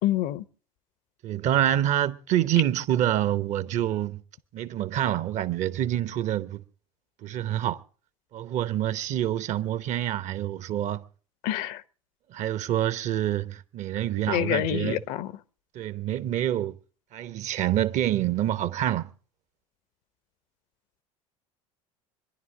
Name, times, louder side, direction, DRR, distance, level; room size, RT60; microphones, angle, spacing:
voice 1, 0.0-0.4 11.4-11.8 14.3-15.3, left 13 dB, 50° left, 0.8 m, -27 dB
voice 2, 1.2-4.2 4.5-6.6 7.2-7.8 8.3-11.0 12.3-15.0 15.7-16.8 17.1-19.1, right 12 dB, 45° right, 0.8 m, -27 dB
25.5 x 11.0 x 3.7 m
figure-of-eight pair, 65°, 17 cm